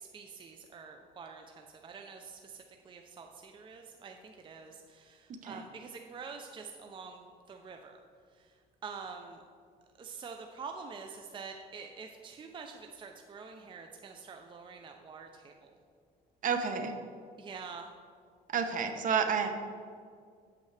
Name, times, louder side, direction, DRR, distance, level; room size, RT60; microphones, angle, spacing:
voice 1, 0.0-8.0 8.8-9.4 10.0-15.7 17.4-17.9, right 5 dB, 30° right, 4 dB, 0.5 m, -46 dB
voice 2, 16.4-16.9 18.5-19.5, right 6 dB, 50° right, 6 dB, 0.8 m, -30 dB
8.3 x 7.6 x 3.3 m, 2.1 s
cardioid pair, 110°, 17 cm